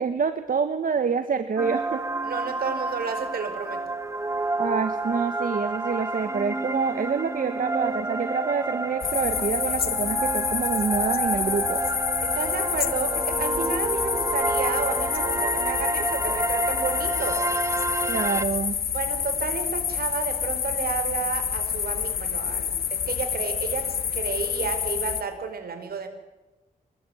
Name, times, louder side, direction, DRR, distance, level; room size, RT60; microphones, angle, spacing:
voice 1, 0.0-2.0 4.6-11.8 18.1-18.8, right 5 dB, 65° right, 9 dB, 1.5 m, -27 dB
sound 1, 1.6-18.4, right 2 dB, 20° right, 1.6 m, -29 dB
voice 2, 2.2-3.8 12.2-17.4 18.9-23.9 24.1-26.1, right 5 dB, 80° right, 8 dB, 4.9 m, -31 dB
sound 2, 9.0-25.2, left 8 dB, 85° left, 1.4 m, -28 dB
26.5 x 20.5 x 9.3 m, 1.1 s
cardioid pair, 85°, 15 cm